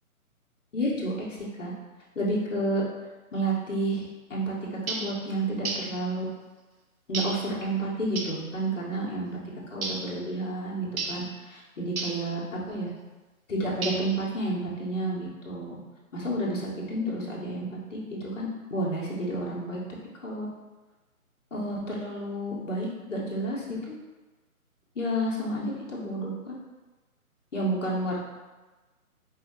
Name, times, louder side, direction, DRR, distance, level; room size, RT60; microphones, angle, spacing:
voice 1, 0.7-1.7 2.1-2.8 3.3-6.2 7.1-9.4 9.7-12.4 12.7-12.9 13.5-15.8 16.1-19.8 20.2-20.5 21.5-24.0 24.9-26.5 27.5-28.2, right 1 dB, 55° left, -4 dB, 1.3 m, -30 dB
sound 1, 4.9-5.2 5.6-6.0 7.1-7.5 8.2-8.4 9.8-10.1 11.0-11.3 12.0-12.3 13.8-14.2, right 3 dB, 75° right, 0.7 m, -33 dB
4.7 x 2.9 x 2.9 m, 1.2 s
figure-of-eight pair, 140°, 44 cm